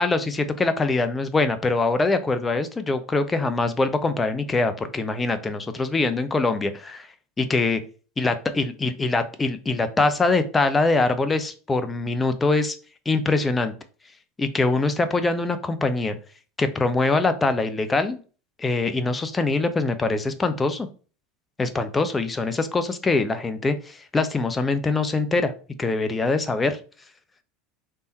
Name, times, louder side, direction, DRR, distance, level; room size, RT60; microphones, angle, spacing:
voice 1, 0.0-7.1 7.4-7.8 8.2-12.8 13.1-13.7 14.4-16.1 16.6-18.2 18.6-20.9 21.6-25.5 25.8-26.8, left 3 dB, 20° left, 9 dB, 0.6 m, -23 dB
3.5 x 2.8 x 4.3 m, 0.38 s
hypercardioid pair, 95°, 0 cm